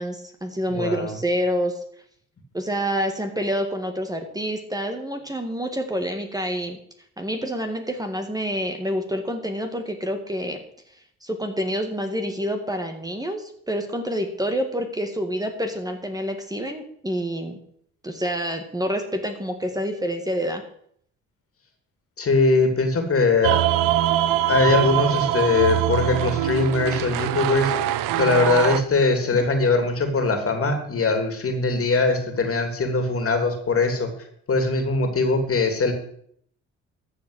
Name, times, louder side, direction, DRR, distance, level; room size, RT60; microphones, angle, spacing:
voice 1, 0.0-1.8 2.5-6.8 7.2-10.6 11.2-17.6 18.0-20.6 29.3-29.4, equal, 10° right, 5 dB, 1.8 m, -27 dB
voice 2, 0.7-1.2 22.2-23.6 24.5-34.1 34.5-35.9, left 3 dB, 45° left, 5 dB, 2.8 m, -21 dB
sound 1, 23.4-28.8, right 13 dB, 85° right, 0.8 m, -23 dB
14.0 x 5.0 x 8.0 m, 0.66 s
supercardioid pair, 70°, 32 cm